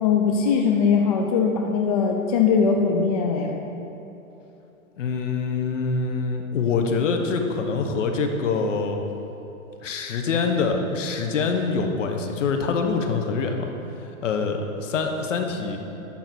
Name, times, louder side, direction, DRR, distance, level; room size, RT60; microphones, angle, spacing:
voice 1, 0.0-3.5, left 5 dB, 30° left, 1 dB, 0.4 m, -21 dB
voice 2, 5.0-9.0 9.8-13.7 14.0-15.8, left 4 dB, 60° left, 4 dB, 1.2 m, -25 dB
11.5 x 3.9 x 7.8 m, 3.0 s
hypercardioid pair, 155°, 41 cm